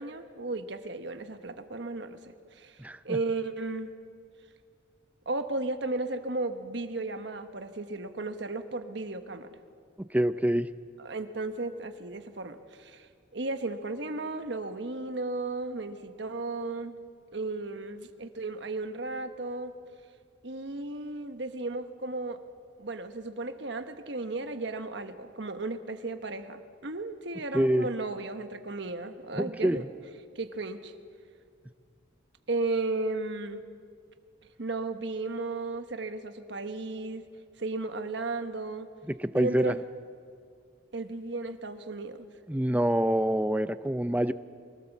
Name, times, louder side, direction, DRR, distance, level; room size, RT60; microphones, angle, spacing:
voice 1, 0.0-3.9 5.3-9.5 11.0-17.0 17.3-19.7 20.4-22.4 22.8-29.8 30.3-30.9 32.5-33.6 34.6-37.2 37.6-38.9 39.3-39.8 40.9-42.3, right 2 dB, 65° right, 8 dB, 1.2 m, -34 dB
voice 2, 2.8-3.2 10.1-10.7 27.5-27.9 29.4-29.8 39.2-39.7 42.5-44.3, right 1 dB, 10° right, 13 dB, 0.4 m, -26 dB
23.0 x 17.5 x 7.2 m, 2.2 s
head